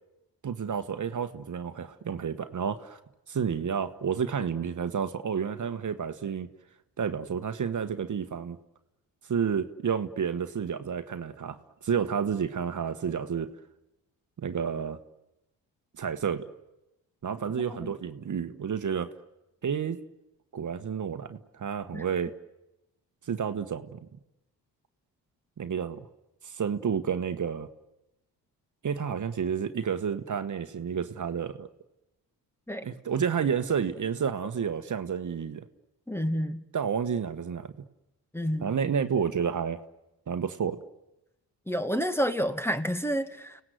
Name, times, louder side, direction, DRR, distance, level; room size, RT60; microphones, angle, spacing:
voice 1, 0.4-3.0 3.3-6.5 7.0-8.6 9.3-11.6 11.8-13.5 14.4-15.0 16.0-16.5 17.2-19.1 19.6-20.0 20.5-22.3 23.3-24.1 25.6-26.1 26.4-27.7 28.8-31.7 32.8-35.7 36.7-37.7 38.6-39.8 40.3-40.8, right 7 dB, 45° right, 9 dB, 1.4 m, -30 dB
voice 2, 36.1-36.6 38.3-38.7 41.7-43.6, equal, 5° left, 10 dB, 1.7 m, -29 dB
30.0 x 18.5 x 7.9 m, 0.94 s
supercardioid pair, 60°, 40 cm